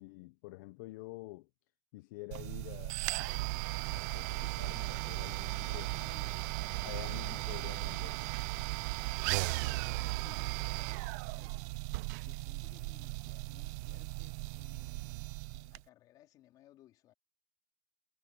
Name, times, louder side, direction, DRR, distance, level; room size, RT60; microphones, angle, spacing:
voice 1, 0.0-1.5 1.9-3.6 3.9-5.9 6.8-8.3, left 20 dB, 50° left, 0.6 m, -48 dB
sound 1, 2.3-15.8, right 23 dB, 45° right, 0.4 m, -37 dB
Bowed string instrument, 4.5-8.6, left 4 dB, 10° left, 2.2 m, -60 dB
voice 2, 5.6-6.4 7.0-7.4 8.8-11.6 11.8-17.1, left 14 dB, 30° left, 3.8 m, -62 dB
supercardioid pair, 175°, 13 cm